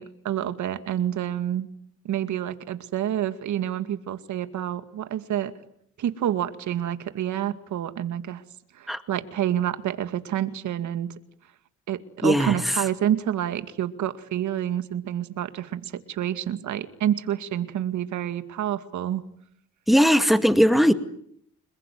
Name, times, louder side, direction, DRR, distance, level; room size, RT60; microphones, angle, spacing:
voice 1, 0.0-1.7 2.0-5.5 6.0-8.4 8.7-11.1 11.9-19.2, right 11 dB, 75° right, 10 dB, 2.2 m, -28 dB
voice 2, 12.2-12.6 19.9-20.9, equal, ahead, 9 dB, 2.2 m, -18 dB
29.5 x 21.0 x 9.5 m, 0.70 s
cardioid pair, 90°, 30 cm